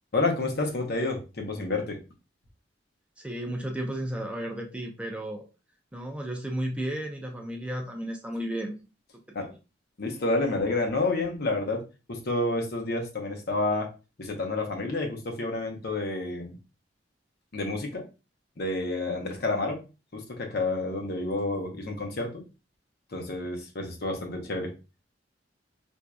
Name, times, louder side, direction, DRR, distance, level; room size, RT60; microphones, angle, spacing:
voice 1, 0.1-2.0 9.3-9.5 10.0-11.8 12.1-13.9 14.2-16.6 17.5-18.0 18.6-19.8 20.1-22.4 23.1-24.8, left 2 dB, 60° left, 2 dB, 0.9 m, -29 dB
voice 2, 3.2-5.4 5.9-8.8 9.4-9.5, right 1 dB, 5° right, 2 dB, 0.5 m, -33 dB
4.5 x 2.6 x 2.3 m, 0.31 s
head